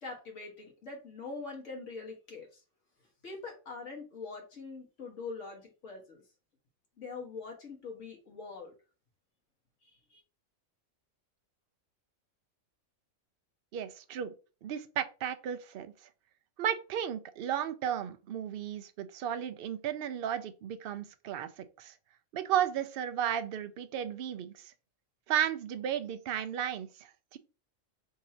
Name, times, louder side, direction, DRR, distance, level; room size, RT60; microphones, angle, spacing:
voice 1, 0.0-2.6 3.2-6.2 7.0-8.7 9.8-10.2, left 4 dB, 65° left, 1.6 m, -43 dB
voice 2, 13.7-14.3 14.6-15.9 16.6-21.9 22.3-24.7 25.3-27.4, right 10 dB, 65° right, 0.6 m, -34 dB
3.8 x 2.7 x 4.2 m
omnidirectional pair, 1.4 m